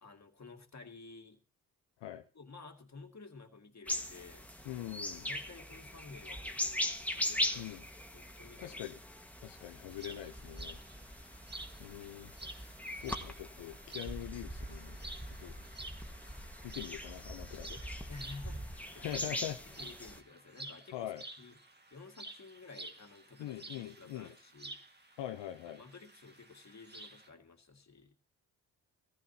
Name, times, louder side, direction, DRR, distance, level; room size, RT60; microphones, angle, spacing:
voice 1, 0.0-1.4 2.3-4.5 5.3-7.8 8.1-8.8 11.0-11.6 18.1-21.6 21.9-24.8 25.7-28.2, left 4 dB, 40° left, 4 dB, 2.2 m, -53 dB
sound 1, 3.9-20.2, left 1 dB, 5° left, 1.6 m, -41 dB
voice 2, 4.6-5.3 7.6-7.8 8.6-9.0 9.4-10.8 11.8-15.0 15.4-15.5 16.6-18.0 19.0-19.6 20.9-21.2 23.4-24.3 25.2-25.8, left 13 dB, 75° left, 6 dB, 0.8 m, -43 dB
sound 2, 9.9-27.3, right 2 dB, 25° right, 1.8 m, -51 dB
17.5 x 14.5 x 2.8 m, 0.35 s
hypercardioid pair, 45°, 43 cm